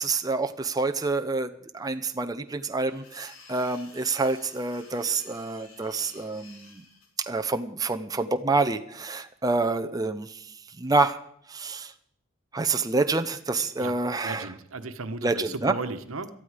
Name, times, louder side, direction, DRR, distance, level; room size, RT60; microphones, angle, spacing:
voice 1, 0.0-6.8 7.2-10.5 10.8-11.2 11.5-11.9 12.5-14.5 15.2-15.8, right 3 dB, 20° right, 7 dB, 0.6 m, -27 dB
sound 1, 2.8-7.1, left 3 dB, 85° left, 4.0 m, -52 dB
voice 2, 14.2-16.3, right 3 dB, 85° right, 10 dB, 1.2 m, -35 dB
18.0 x 12.5 x 5.0 m, 0.67 s
head